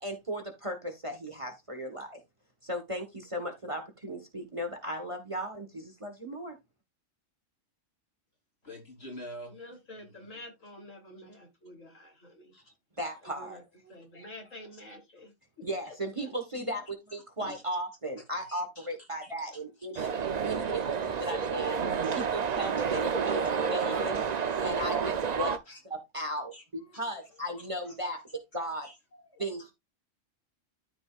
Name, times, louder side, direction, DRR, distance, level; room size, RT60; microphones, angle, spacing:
voice 1, 0.0-2.2 2.6-6.5 13.0-13.6 15.6-16.8 17.1-20.1 20.5-21.8 22.1-24.2 24.6-25.6 25.8-26.5 26.9-28.2 28.5-28.9 29.4-29.6, equal, 25° right, 1.3 m, -36 dB
voice 2, 8.6-9.5 10.0-10.3 12.5-12.6 13.8-14.0 17.4-17.6 18.1-18.2 18.5-19.6 19.9-20.5 21.9-22.9 23.3-23.4 25.7-25.8 26.5-28.2 28.8-29.7, equal, 50° left, 4.3 m, -50 dB
voice 3, 9.5-12.6 13.2-13.6 13.9-15.9 16.2-16.3, left 1 dB, 80° left, 3.5 m, -49 dB
sound 1, 20.0-25.6, right 6 dB, 40° right, 0.6 m, -30 dB
13.0 x 5.3 x 2.4 m
omnidirectional pair, 1.3 m